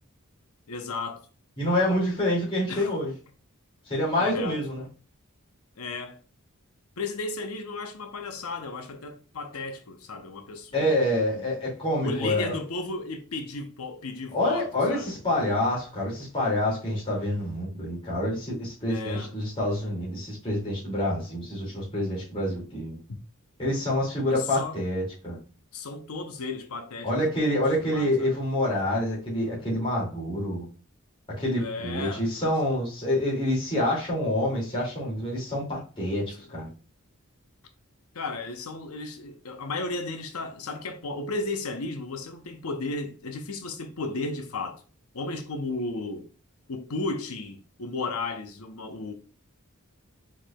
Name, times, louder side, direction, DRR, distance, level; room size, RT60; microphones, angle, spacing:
voice 1, 0.7-1.3 2.7-3.0 4.2-4.6 5.8-6.2 7.0-11.5 12.0-15.1 18.9-19.4 24.3-24.8 25.7-27.1 27.4-28.3 31.5-32.5 36.4-36.5 38.1-44.8 45.1-46.3 46.7-49.1, left 3 dB, 75° left, 0.7 m, -34 dB
voice 2, 1.6-3.1 3.9-4.9 10.7-12.5 14.3-23.0 23.6-25.4 27.0-30.7 31.4-36.7, left 1 dB, 25° left, 2.3 m, -27 dB
4.7 x 4.4 x 2.3 m
head